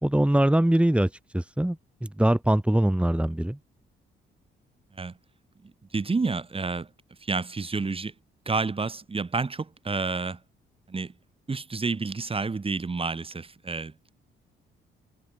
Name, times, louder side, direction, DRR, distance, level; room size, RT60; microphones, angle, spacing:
voice 1, 0.0-3.6, right 1 dB, 5° right, 5.2 m, -23 dB
voice 2, 5.6-6.9 7.2-8.1 8.5-10.4 10.9-11.1 11.5-13.9, right 4 dB, 30° right, 6.3 m, -29 dB
cardioid pair, 90°, 20 cm